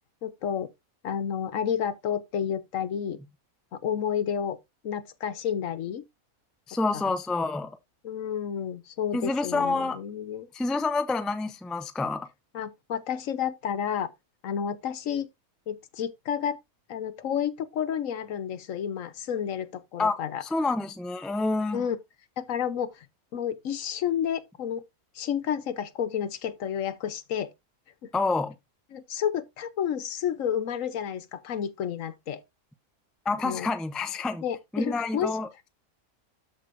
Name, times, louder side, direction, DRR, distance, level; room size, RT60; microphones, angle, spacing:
voice 1, 0.2-0.7 1.0-3.2 3.7-4.6 4.8-6.0 6.9-7.1 8.0-10.5 12.5-14.1 14.4-15.3 15.7-16.6 16.9-20.4 21.7-22.0 22.4-23.1 23.3-24.8 25.1-27.5 28.0-28.1 28.9-32.4 33.4-33.7 34.4-35.4, left 8 dB, 70° left, 1.1 m, -30 dB
voice 2, 6.7-7.7 9.1-10.0 10.5-12.3 20.0-21.8 28.1-28.5 33.2-34.4 34.7-35.5, left 3 dB, ahead, 0.4 m, -28 dB
13.0 x 4.8 x 2.5 m
omnidirectional pair, 1.5 m